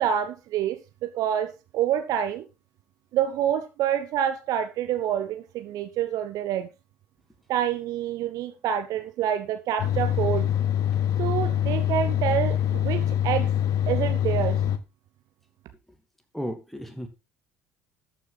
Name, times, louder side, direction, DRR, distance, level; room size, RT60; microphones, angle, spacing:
voice 1, 0.0-2.5 3.1-6.7 7.5-10.5 11.2-13.5 13.9-14.6, right 10 dB, 50° right, 1.1 m, -27 dB
sound 1, 9.8-14.8, left 10 dB, 50° left, 1.1 m, -24 dB
voice 2, 16.3-17.1, equal, ahead, 2.5 m, -33 dB
13.5 x 6.3 x 4.1 m
figure-of-eight pair, 60°, 8 cm